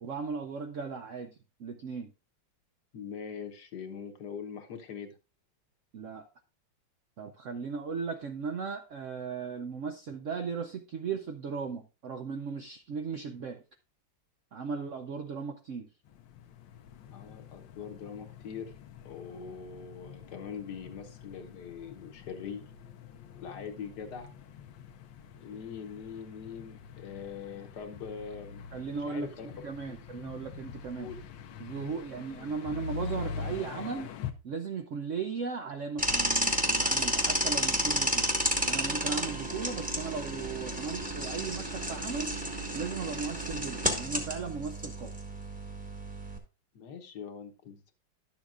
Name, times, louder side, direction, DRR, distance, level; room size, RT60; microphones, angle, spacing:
voice 1, 0.0-2.1 5.9-6.3 7.2-13.6 14.5-15.9 28.7-29.3 29.6-31.1 31.6-34.1 34.4-42.4 42.7-45.1, right 5 dB, 65° right, 6 dB, 0.7 m, -37 dB
voice 2, 2.9-5.1 17.1-18.7 19.0-22.7 23.4-24.3 25.4-29.5 29.9-30.0 31.0-31.2 46.7-47.9, left 6 dB, 65° left, 6 dB, 1.5 m, -42 dB
sound 1, 16.1-34.3, left 6 dB, 80° left, 1.5 m, -44 dB
sound 2, 36.0-46.4, equal, 5° right, 1.1 m, -31 dB
11.5 x 7.3 x 2.4 m, 0.30 s
omnidirectional pair, 2.0 m